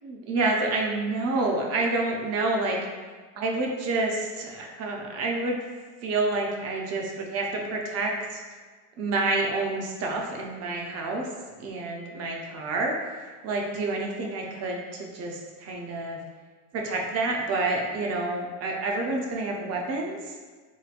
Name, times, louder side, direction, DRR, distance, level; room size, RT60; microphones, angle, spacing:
voice 1, 0.0-2.8 3.4-5.6 6.0-8.4 9.0-11.3 11.6-13.0 13.4-16.2 16.7-20.3, right 2 dB, 45° right, 0 dB, 0.6 m, -28 dB
3.8 x 3.1 x 2.4 m, 1.4 s
cardioid pair, 150°, 36 cm